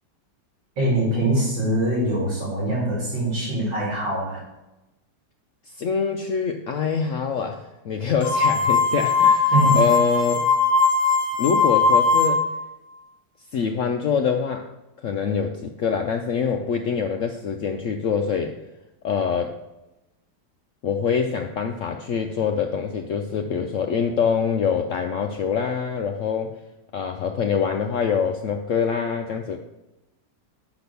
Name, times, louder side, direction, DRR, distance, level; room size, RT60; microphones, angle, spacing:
voice 1, 0.8-4.4 9.5-9.8, right 1 dB, 75° right, -6 dB, 3.4 m, -23 dB
voice 2, 5.8-10.4 11.4-12.4 13.5-14.7 15.0-18.6 19.0-19.6 20.8-26.5 26.9-29.6, left 6 dB, 80° left, 5 dB, 0.6 m, -25 dB
sound 1, 8.2-12.6, left 4 dB, 55° left, 1.8 m, -19 dB
6.1 x 5.9 x 6.8 m, 0.98 s
omnidirectional pair, 2.0 m